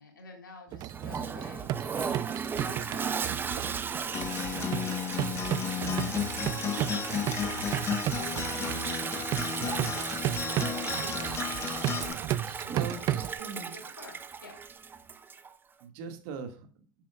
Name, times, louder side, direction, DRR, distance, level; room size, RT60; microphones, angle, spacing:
voice 1, 0.0-11.5 12.6-13.1 13.4-14.6, left 2 dB, 75° left, 3 dB, 3.4 m, -51 dB
sound 1, 0.7-13.4, right 13 dB, 35° right, 0.4 m, -34 dB
Toilet flush, 0.9-15.5, right 6 dB, 20° right, 0.8 m, -36 dB
Acoustic guitar, 4.1-12.1, left 8 dB, 25° left, 1.2 m, -34 dB
voice 2, 12.7-13.7 15.8-16.7, right 5 dB, 50° right, 7 dB, 1.9 m, -40 dB
11.0 x 8.5 x 2.4 m, 0.38 s
figure-of-eight pair, 85°, 11 cm